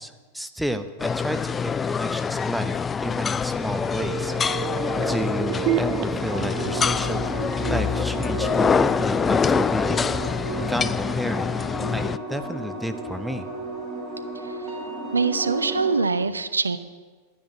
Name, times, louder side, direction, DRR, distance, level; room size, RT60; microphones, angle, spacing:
voice 1, 0.0-4.6 5.0-7.3 7.7-10.1 10.7-11.5 11.9-13.5, equal, ahead, 9 dB, 0.9 m, -31 dB
sound 1, 1.0-12.2, left 6 dB, 20° left, 0.3 m, -25 dB
sound 2, 3.5-9.2 9.5-9.6, right 8 dB, 45° right, 0.6 m, -31 dB
sound 3, 6.1-16.0, right 2 dB, 20° right, 3.4 m, -33 dB
voice 2, 14.3-14.8 15.1-16.8, right 4 dB, 75° right, 13 dB, 0.7 m, -24 dB
12.0 x 10.0 x 8.2 m, 1.4 s
figure-of-eight pair, 90°, 0 cm